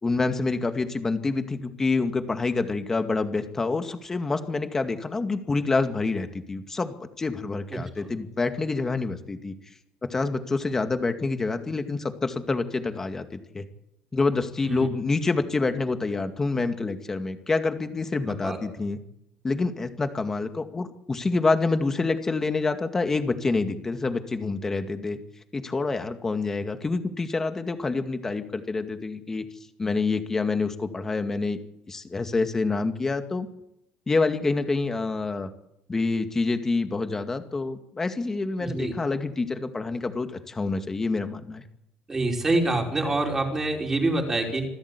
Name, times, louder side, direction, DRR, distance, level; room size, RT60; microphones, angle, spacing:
voice 1, 0.0-9.5 10.0-13.6 14.1-19.0 19.4-25.2 25.5-29.4 29.8-31.6 31.9-33.5 34.1-35.5 35.9-41.6, left 3 dB, 20° left, 7 dB, 2.2 m, -27 dB
voice 2, 7.7-8.1 14.6-14.9 18.3-18.6 38.6-38.9 42.1-44.7, right 2 dB, 15° right, 2 dB, 5.1 m, -26 dB
26.0 x 14.0 x 8.4 m, 0.81 s
cardioid pair, 130°, 2 cm